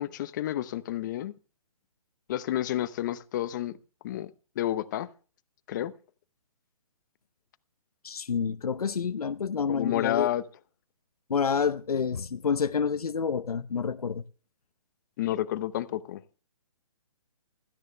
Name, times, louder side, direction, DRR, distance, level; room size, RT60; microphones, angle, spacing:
voice 1, 0.0-1.3 2.3-3.8 4.0-4.3 4.6-5.1 5.7-5.9 9.7-10.4 15.2-16.2, left 13 dB, 30° left, 0.8 m, -30 dB
voice 2, 8.0-10.3 11.3-14.2, left 6 dB, 90° left, 0.9 m, -28 dB
16.5 x 13.5 x 3.3 m
hypercardioid pair, 155°, 19 cm